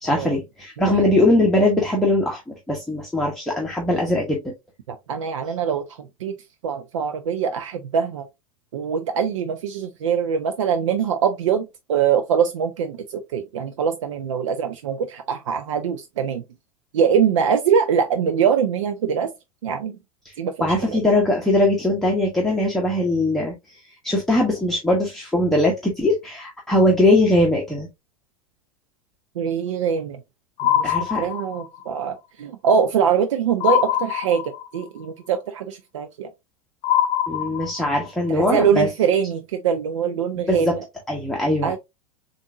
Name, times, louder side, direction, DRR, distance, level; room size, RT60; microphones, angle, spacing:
voice 1, 0.0-4.5 20.2-20.3 20.6-27.9 30.8-31.3 37.3-38.9 40.5-40.8 41.1-41.8, left 1 dB, ahead, 1.1 m, -21 dB
voice 2, 4.9-6.3 6.6-8.3 8.7-16.4 16.9-19.3 19.6-20.0 20.4-21.1 29.4-30.2 30.6-36.3 38.3-40.8 41.6-41.8, right 7 dB, 60° right, 0.6 m, -23 dB
sound 1, 30.6-31.8 33.6-34.8 36.8-38.1, left 11 dB, 40° left, 0.5 m, -23 dB
6.9 x 2.6 x 2.5 m
figure-of-eight pair, 90°, 17 cm